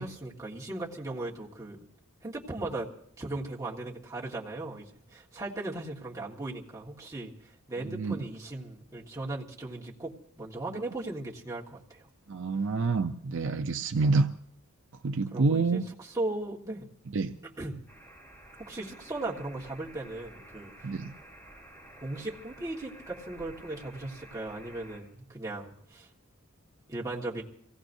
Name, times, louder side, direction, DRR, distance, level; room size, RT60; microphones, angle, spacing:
voice 1, 0.0-1.9 2.2-12.1 15.3-16.9 17.6-17.8 18.6-20.9 22.0-26.1 26.9-27.4, right 2 dB, 15° right, -5 dB, 1.6 m, -37 dB
voice 2, 7.8-8.2 12.3-14.3 15.0-15.8 17.1-17.3 20.8-21.1, right 4 dB, 60° right, 7 dB, 0.5 m, -27 dB
sound 1, 17.9-25.0, right 1 dB, 10° left, 3.3 m, -51 dB
24.0 x 17.0 x 2.7 m, 0.67 s
head